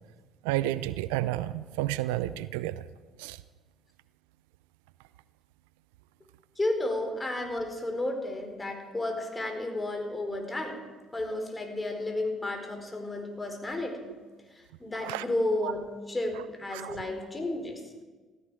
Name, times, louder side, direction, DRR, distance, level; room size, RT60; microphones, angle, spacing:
voice 1, 0.4-2.9 3.2-3.4 15.0-15.3 15.6-15.7 16.7-17.0, right 15 dB, 80° right, 17 dB, 0.4 m, -31 dB
voice 2, 6.6-10.8 11.1-14.1 14.5-17.8, left 1 dB, 20° left, 4 dB, 4.3 m, -32 dB
16.0 x 15.0 x 4.9 m, 1.3 s
hypercardioid pair, 55°, 0 cm